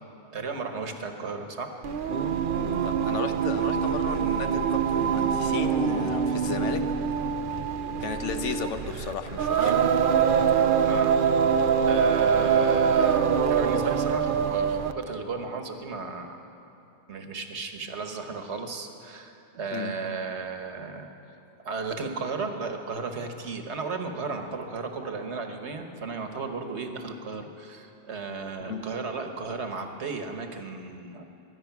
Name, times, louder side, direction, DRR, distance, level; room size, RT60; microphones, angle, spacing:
voice 1, 0.3-1.7 10.8-11.2 11.4-16.4 17.1-21.1 21.6-31.2, right 4 dB, 70° right, 5 dB, 1.5 m, -34 dB
Singing, 1.8-15.0, right 7 dB, 55° right, 0.7 m, -24 dB
voice 2, 2.5-6.9 8.0-9.8 19.7-19.9 28.6-28.9, left 6 dB, 85° left, 8 dB, 1.2 m, -34 dB
23.0 x 10.0 x 5.9 m, 2.8 s
omnidirectional pair, 1.2 m